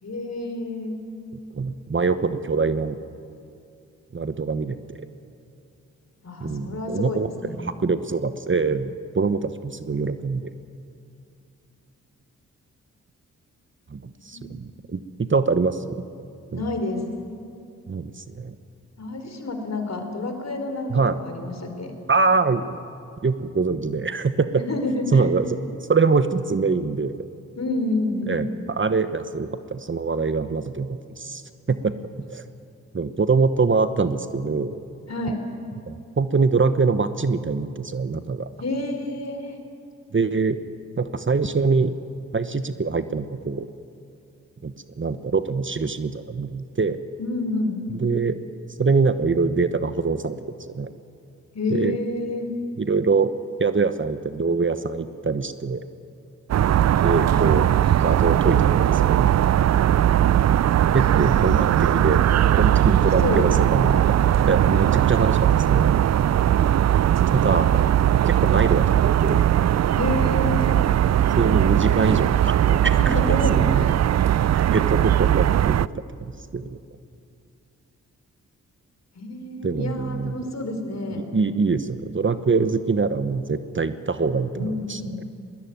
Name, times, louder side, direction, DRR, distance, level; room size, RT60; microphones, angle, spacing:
voice 1, 0.0-1.0 6.2-7.7 14.3-14.8 16.5-17.0 19.0-21.9 24.5-25.3 27.6-28.4 35.1-35.4 38.6-39.6 47.2-47.8 51.5-52.5 61.2-61.5 63.2-63.5 70.0-70.7 73.0-73.9 79.2-81.3 84.5-85.2, left 2 dB, 50° left, 5 dB, 4.1 m, -29 dB
voice 2, 1.5-3.0 4.1-5.1 6.4-7.3 7.5-10.5 13.9-16.0 16.5-16.6 17.9-18.5 20.9-21.2 22.1-22.8 23.2-24.6 25.1-25.6 25.9-27.2 28.3-31.4 31.7-31.9 32.3-32.4 32.9-34.8 35.9-38.5 40.1-40.6 41.0-41.9 42.3-43.7 44.6-47.0 48.0-48.4 48.8-50.4 50.7-50.9 51.7-52.0 52.8-53.3 53.6-55.8 57.0-57.7 58.0-59.4 60.9-62.2 62.6-64.2 64.4-65.9 67.3-67.8 68.3-69.4 71.4-73.9 74.5-76.7 79.6-80.4 81.1-85.2, right 4 dB, 35° right, 11 dB, 1.1 m, -24 dB
sound 1, 56.5-75.9, right 11 dB, 50° right, 0.5 m, -19 dB
21.0 x 18.0 x 9.4 m, 2.5 s
supercardioid pair, 40°, 34 cm